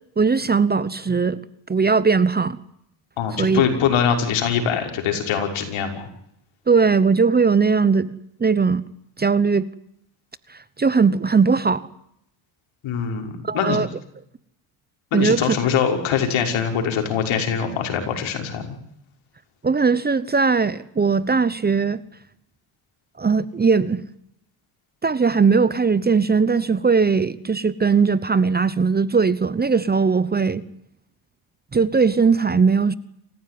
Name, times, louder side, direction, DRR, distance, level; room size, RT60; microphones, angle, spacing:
voice 1, 0.2-1.4 1.7-2.6 3.4-3.6 6.7-8.8 9.2-9.7 10.8-11.9 13.4-13.9 15.1-15.6 19.6-22.0 23.2-24.0 25.0-30.6 31.7-32.9, right 5 dB, 20° right, 17 dB, 1.0 m, -19 dB
voice 2, 3.2-6.1 12.8-13.8 15.1-18.8, left 7 dB, 70° left, 4 dB, 6.0 m, -23 dB
28.5 x 15.0 x 9.5 m, 0.76 s
cardioid pair, 110°, 48 cm